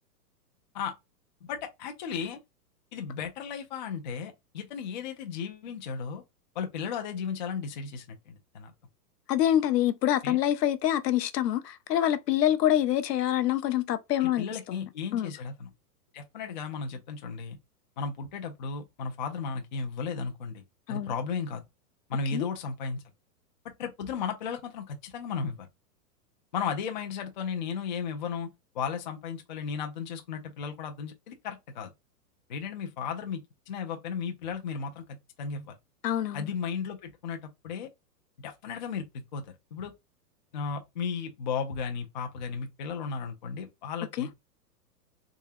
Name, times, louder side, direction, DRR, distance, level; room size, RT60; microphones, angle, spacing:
voice 1, 1.5-2.4 2.9-6.2 6.6-8.7 10.2-10.4 14.2-15.7 16.1-17.6 18.0-20.6 20.9-21.6 22.1-23.0 23.6-25.7 26.5-28.5 28.7-31.9 32.5-33.4 33.7-35.8 36.3-37.9 38.4-39.0 39.3-39.4 39.7-39.9 40.5-44.3, left 6 dB, 30° left, 0.4 m, -35 dB
voice 2, 9.3-14.8 15.1-15.3 20.9-21.1 22.3-22.5 36.0-36.5 44.2-44.3, left 12 dB, 75° left, 0.8 m, -26 dB
3.6 x 3.1 x 2.7 m
hypercardioid pair, 160°, 48 cm